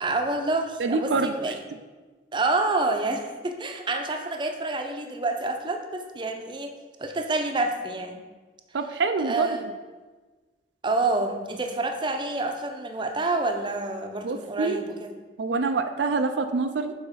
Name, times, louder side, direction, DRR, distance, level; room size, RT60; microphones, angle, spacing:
voice 1, 0.0-1.6 2.3-6.7 7.0-8.2 9.2-9.6 10.8-15.1, right 2 dB, 25° right, 4 dB, 0.6 m, -28 dB
voice 2, 0.8-1.3 8.7-9.7 14.2-14.8 15.4-16.9, right 4 dB, 85° right, 7 dB, 0.5 m, -26 dB
6.9 x 4.2 x 5.6 m, 1.3 s
head